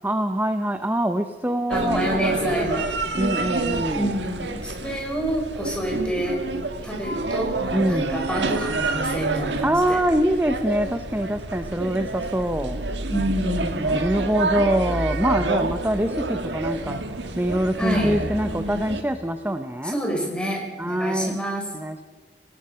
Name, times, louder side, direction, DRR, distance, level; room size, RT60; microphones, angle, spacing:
voice 1, 0.0-2.0 3.2-4.2 7.7-8.2 9.6-12.8 13.8-17.0 17.3-20.0 20.8-21.4 21.7-22.0, right 1 dB, 10° right, 8 dB, 0.8 m, -24 dB
voice 2, 1.7-2.9 3.9-6.4 6.8-10.0 13.1-13.8 17.8-18.2 19.8-21.7, equal, 5° left, 0 dB, 5.2 m, -28 dB
sound 1, 1.7-19.0, right 2 dB, 80° right, 1.6 m, -28 dB
27.5 x 18.0 x 5.7 m, 1.4 s
head